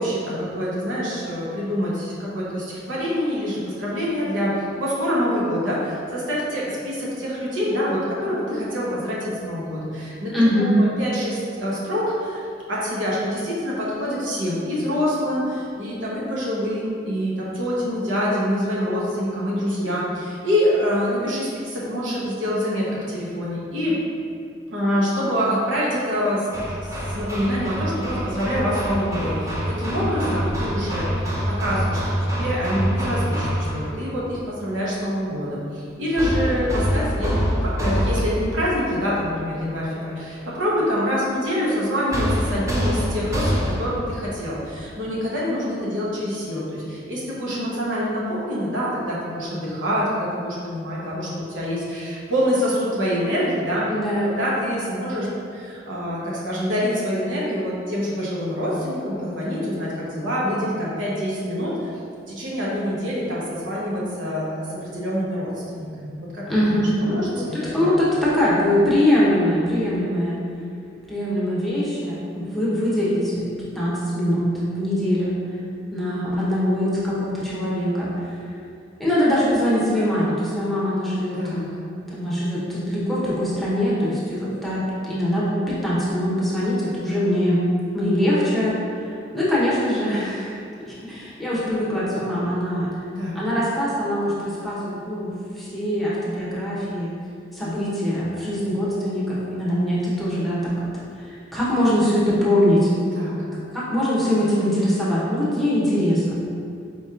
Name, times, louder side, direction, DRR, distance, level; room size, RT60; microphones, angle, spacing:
voice 1, 0.0-10.3 10.8-12.4 12.7-23.9 24.7-26.5 27.1-32.0 32.4-37.3 37.6-53.8 54.2-61.9 62.3-67.9 81.4-81.7 93.1-93.4 103.1-103.5, equal, 80° right, -6 dB, 1.1 m, -26 dB
voice 2, 10.3-10.7 53.9-54.4 66.5-70.4 71.1-75.4 75.9-78.4 79.0-81.7 82.1-87.6 87.9-90.5 90.9-92.9 93.3-97.1 97.5-100.9 101.1-102.9 103.5-106.3, left 1 dB, ahead, -9 dB, 0.9 m, -22 dB
Hammer, 26.5-34.0 36.2-38.6 42.1-44.0, equal, 15° right, 0.6 m, -25 dB
4.3 x 3.1 x 3.7 m, 2.5 s
head